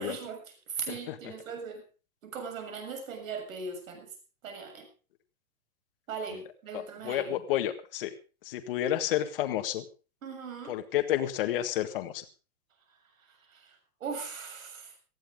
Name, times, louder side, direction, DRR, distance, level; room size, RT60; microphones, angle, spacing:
voice 1, 0.0-1.8 2.2-4.1 4.4-4.9 6.1-7.4 10.2-10.8 13.3-15.0, right 5 dB, 65° right, 6 dB, 6.9 m, -39 dB
voice 2, 6.7-8.1 8.4-9.8 10.7-12.2, left 12 dB, 40° left, 8 dB, 1.7 m, -30 dB
19.0 x 14.0 x 3.7 m, 0.34 s
hypercardioid pair, 170°, 44 cm